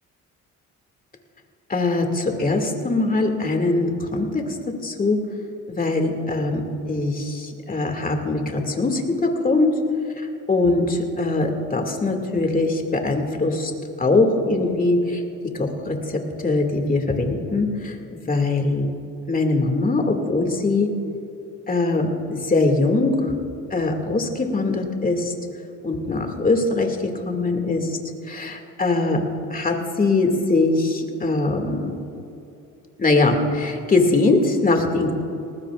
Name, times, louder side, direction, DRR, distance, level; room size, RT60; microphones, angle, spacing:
voice 1, 1.7-4.4 4.8-5.2 5.7-6.6 6.9-9.7 10.2-13.7 14.0-15.2 15.5-16.0 16.4-18.9 19.3-20.9 21.7-23.1 23.7-25.3 25.8-27.0 27.2-28.0 28.3-29.2 29.5-31.9 33.0-35.1, left 3 dB, 30° left, 3 dB, 2.3 m, -22 dB
20.0 x 19.0 x 2.5 m, 2.7 s
cardioid pair, 90°, 30 cm